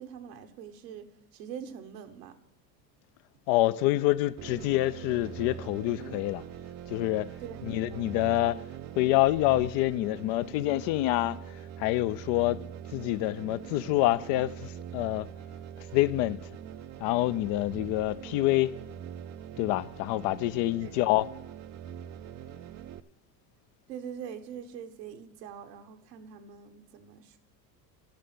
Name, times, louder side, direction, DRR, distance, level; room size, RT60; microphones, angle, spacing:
voice 1, 0.0-2.4 7.4-7.6 7.9-8.1 20.8-20.9 23.9-27.4, right 8 dB, 85° right, 1.3 m, -43 dB
voice 2, 3.5-6.4 6.9-7.3 7.6-8.6 9.0-11.4 11.8-12.6 12.9-15.3 15.9-16.4 17.0-18.8 19.6-21.3, left 16 dB, 65° left, 0.6 m, -27 dB
sound 1, 4.4-23.0, right 10 dB, 35° right, 0.5 m, -43 dB
10.5 x 7.0 x 7.6 m
supercardioid pair, 85°, 48 cm